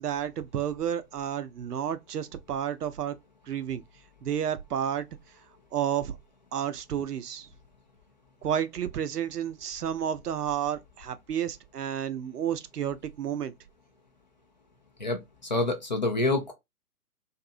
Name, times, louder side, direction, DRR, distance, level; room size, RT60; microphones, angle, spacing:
voice 1, 0.0-3.2 3.5-3.8 4.2-5.1 5.7-6.2 6.5-7.5 8.4-13.5, right 9 dB, 75° right, 0.6 m, -31 dB
voice 2, 15.0-16.5, left 2 dB, 30° left, 0.4 m, -27 dB
2.6 x 2.6 x 2.4 m
figure-of-eight pair, 120°, 47 cm